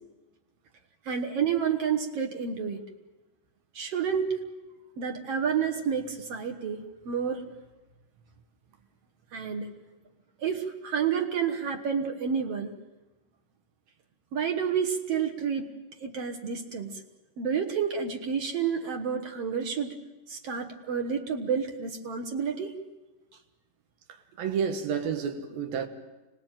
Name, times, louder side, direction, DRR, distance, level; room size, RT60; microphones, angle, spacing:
voice 1, 1.0-2.8 3.7-4.4 5.0-7.4 9.3-9.7 10.4-12.7 14.3-15.7 16.0-17.0 17.4-20.0 20.3-22.8, right 7 dB, 55° right, 1.9 m, -29 dB
voice 2, 24.4-25.9, right 7 dB, 85° right, 3.4 m, -30 dB
26.0 x 19.5 x 9.0 m
omnidirectional pair, 4.1 m